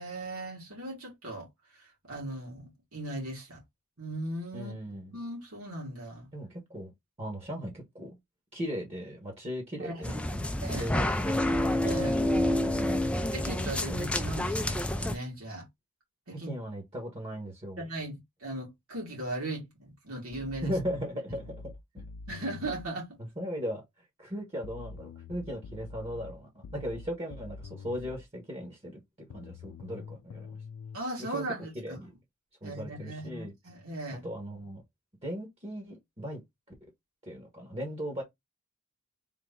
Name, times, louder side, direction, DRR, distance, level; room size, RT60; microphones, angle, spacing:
voice 1, 0.0-1.5 1.7-3.6 4.0-4.7 5.1-6.3 9.8-10.2 10.6-10.9 11.8-12.2 13.3-15.7 16.3-16.5 17.8-20.7 22.3-23.1 30.9-32.0 32.6-34.3, right 1 dB, 70° right, 2.2 m, -38 dB
voice 2, 4.5-5.2 6.3-6.9 7.2-8.2 8.5-10.5 10.8-11.5 12.4-13.1 16.3-17.8 20.6-22.0 23.4-30.6 31.3-32.1 32.6-33.5 34.2-34.8 35.2-36.4 37.3-38.2, equal, 25° right, 1.2 m, -38 dB
sound 1, 10.0-15.1, left 1 dB, 5° left, 0.4 m, -28 dB
sound 2, 20.3-22.9 24.6-28.3 29.3-31.0, left 4 dB, 85° left, 0.4 m, -45 dB
3.7 x 2.9 x 3.7 m
head